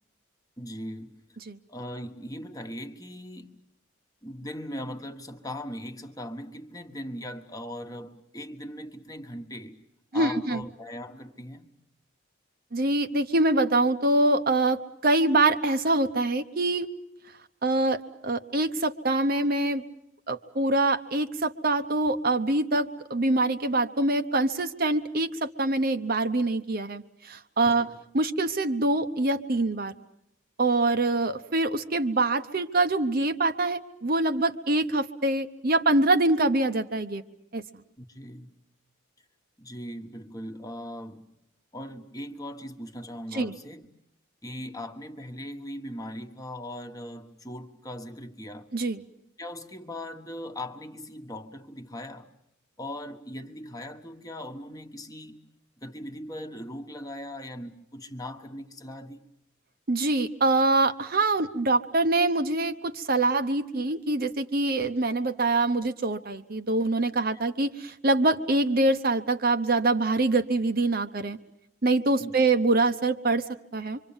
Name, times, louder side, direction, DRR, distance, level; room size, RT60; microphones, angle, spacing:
voice 1, 0.6-1.2 1.7-3.6 4.2-9.8 10.1-11.7 27.6-27.9 38.0-38.5 39.6-41.3 41.7-43.9 44.4-48.7 49.4-52.3 52.8-55.4 55.8-59.2 72.2-72.3, left 1 dB, 15° left, 1.3 m, -39 dB
voice 2, 10.1-10.6 12.7-16.9 17.6-19.8 20.3-27.9 28.1-29.9 30.6-37.2 37.5-37.6 43.3-43.5 48.7-49.0 59.9-71.4 71.8-73.4 73.7-74.0, right 2 dB, 45° right, 0.9 m, -24 dB
26.5 x 25.0 x 7.2 m
head